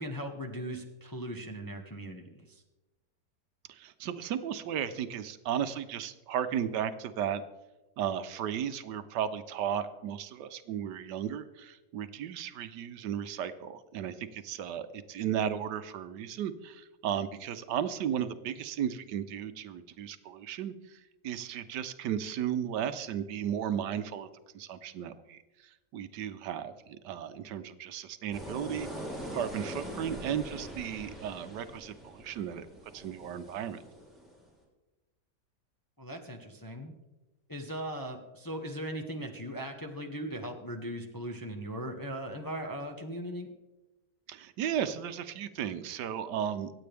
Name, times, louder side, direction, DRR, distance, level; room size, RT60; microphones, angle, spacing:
voice 1, 0.0-2.6 36.0-36.9 37.5-43.5, equal, 15° left, 3 dB, 0.7 m, -39 dB
voice 2, 3.7-7.4 8.0-20.7 21.2-24.3 24.5-25.4 25.9-26.7 27.0-28.9 29.3-32.7 32.9-33.8 44.3-46.7, right 9 dB, 80° right, 11 dB, 1.3 m, -35 dB
sound 1, 28.3-34.4, equal, ahead, 3.2 m, -43 dB
24.5 x 8.6 x 3.4 m, 1.1 s
omnidirectional pair, 1.8 m